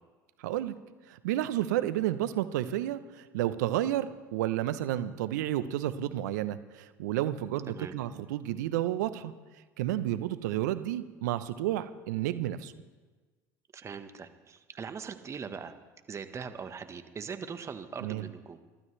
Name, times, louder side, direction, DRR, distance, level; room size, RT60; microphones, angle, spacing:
voice 1, 0.4-0.8 1.1-9.3 9.8-12.7 18.0-18.3, right 13 dB, 75° right, 12 dB, 0.8 m, -31 dB
voice 2, 13.7-15.7 16.1-18.6, right 6 dB, 30° right, 8 dB, 1.3 m, -41 dB
24.0 x 12.5 x 3.4 m, 1.3 s
hypercardioid pair, 75°, 9 cm